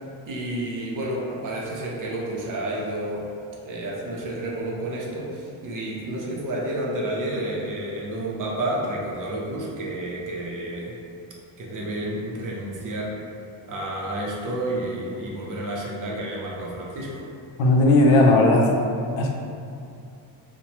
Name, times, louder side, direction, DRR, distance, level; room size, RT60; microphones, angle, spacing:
voice 1, 0.3-3.3 3.6-10.9 11.6-13.2 13.7-17.2, right 1 dB, 45° right, -3 dB, 0.6 m, -30 dB
voice 2, 17.6-18.8 19.2-19.3, left 2 dB, 80° left, 0 dB, 0.6 m, -16 dB
2.9 x 2.1 x 2.9 m, 2.5 s
cardioid pair, 105°, 46 cm